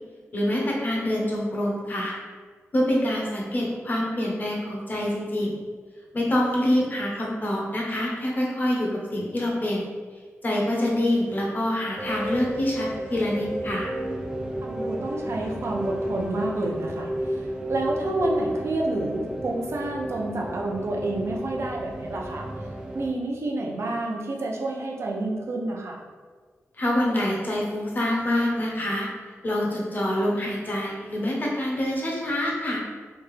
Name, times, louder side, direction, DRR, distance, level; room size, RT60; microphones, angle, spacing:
voice 1, 0.3-2.1 2.7-5.6 6.1-9.9 10.4-13.9 26.8-29.1 29.4-32.8, left 1 dB, 35° left, -2 dB, 0.9 m, -26 dB
sound 1, 12.0-23.1, right 1 dB, 15° right, 0.4 m, -32 dB
voice 2, 14.6-22.5 22.9-26.0, right 2 dB, 60° right, 0 dB, 0.6 m, -29 dB
3.4 x 2.9 x 3.2 m, 1.5 s
wide cardioid pair, 110°, 5 cm